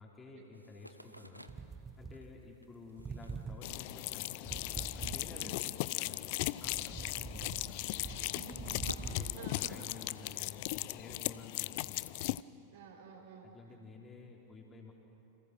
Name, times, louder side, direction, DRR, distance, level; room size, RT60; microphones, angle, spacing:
voice 1, 0.0-1.5 2.0-8.3 9.2-9.4 9.7-12.3 13.4-14.9, left 3 dB, 20° left, -1 dB, 3.8 m, -52 dB
sound 1, 0.5-6.0 6.3-10.2, equal, 90° right, 1.1 m, -53 dB
sound 2, 1.5-2.7 3.0-5.7 6.1-9.4, right 5 dB, 20° right, 1.2 m, -45 dB
sound 3, 3.6-12.4, left 20 dB, 50° left, 0.5 m, -38 dB
voice 2, 8.0-9.9 12.7-13.6, right 4 dB, 55° right, 3 dB, 4.8 m, -51 dB
29.5 x 27.0 x 6.2 m, 3.0 s
figure-of-eight pair, 90°, 0 cm